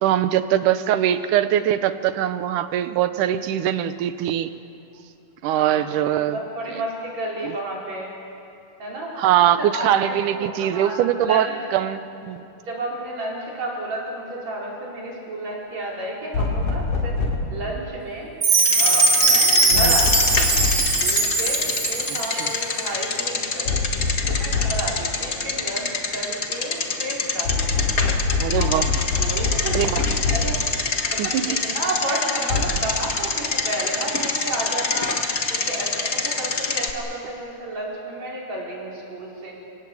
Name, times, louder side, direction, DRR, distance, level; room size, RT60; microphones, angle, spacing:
voice 1, 0.0-4.5 5.4-6.4 6.7-6.8 7.4-7.6 9.2-12.4 19.7-20.0 22.1-22.5 28.4-28.9 29.7-30.0 31.2-31.6, right 11 dB, 85° right, 11 dB, 2.5 m, -22 dB
voice 2, 5.5-8.1 8.8-9.2 9.7-11.5 12.7-17.1 17.5-18.3 18.8-20.5 20.8-23.7 24.3-27.9 28.5-28.9 29.2-29.9 30.3-30.6 31.1-35.2 35.5-39.5, right 1 dB, 60° right, -3 dB, 6.0 m, -31 dB
sound 1, 16.3-17.5 19.7-20.9 23.7-24.9 27.5-30.6 32.5-32.7, left 4 dB, 70° left, 4.2 m, -24 dB
Chime, 18.4-22.5, right 3 dB, 40° right, 4.3 m, -20 dB
Bicycle, 18.5-36.9, left 4 dB, 35° left, 1.5 m, -26 dB
29.5 x 17.5 x 8.7 m, 2.6 s
omnidirectional pair, 3.6 m